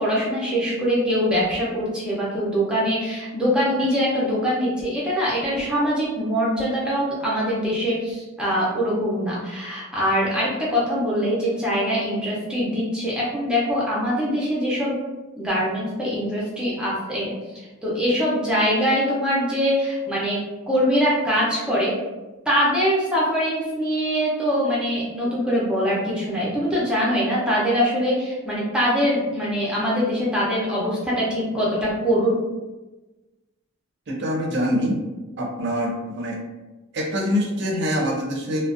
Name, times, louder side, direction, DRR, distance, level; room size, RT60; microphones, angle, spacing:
voice 1, 0.0-15.0 15.4-17.3 17.8-21.9 22.5-32.4, equal, 5° right, -6 dB, 0.6 m, -23 dB
voice 2, 34.1-35.0 35.4-36.4 36.9-38.6, equal, 55° right, 0 dB, 0.5 m, -24 dB
2.4 x 2.0 x 2.5 m, 1.1 s
head